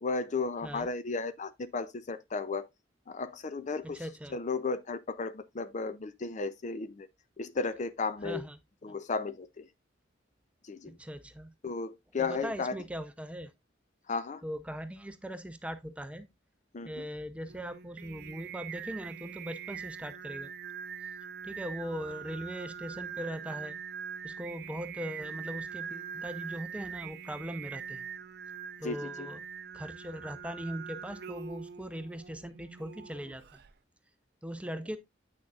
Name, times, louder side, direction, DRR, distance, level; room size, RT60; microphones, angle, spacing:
voice 1, 0.0-2.7 3.1-4.0 4.3-7.1 7.4-8.5 8.8-9.7 10.6-11.0 11.6-12.8 14.1-14.4 16.7-17.1 28.8-29.3, left 4 dB, 40° left, 0.5 m, -34 dB
voice 2, 3.8-4.3 8.2-8.6 10.9-11.5 12.2-13.5 14.4-16.3 16.8-20.5 21.4-23.8 24.2-28.1 28.8-29.4 29.7-33.6 34.4-35.0, equal, 5° right, 0.6 m, -40 dB
Singing, 17.5-33.7, right 7 dB, 55° right, 0.5 m, -43 dB
8.7 x 6.2 x 2.4 m
head